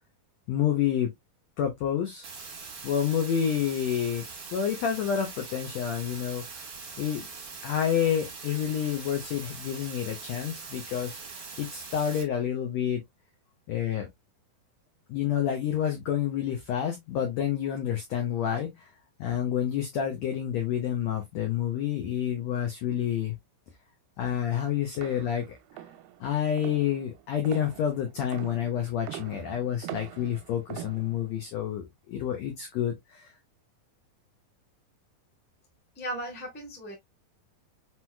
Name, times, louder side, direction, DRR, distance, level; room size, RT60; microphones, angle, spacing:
voice 1, 0.5-1.1 1.6-2.3 2.8-4.2 4.5-6.6 7.0-7.3 7.6-11.2 11.6-13.0 13.7-14.1 15.1-18.9 19.2-23.3 24.2-25.6 26.2-33.3, left 9 dB, 80° left, 1.5 m, -29 dB
sound 1, 2.2-12.2, right 4 dB, 55° right, 1.2 m, -42 dB
sound 2, 24.9-31.4, right 12 dB, 85° right, 2.4 m, -43 dB
voice 2, 35.9-36.9, right 1 dB, 10° left, 0.5 m, -36 dB
6.0 x 3.0 x 2.2 m
omnidirectional pair, 4.2 m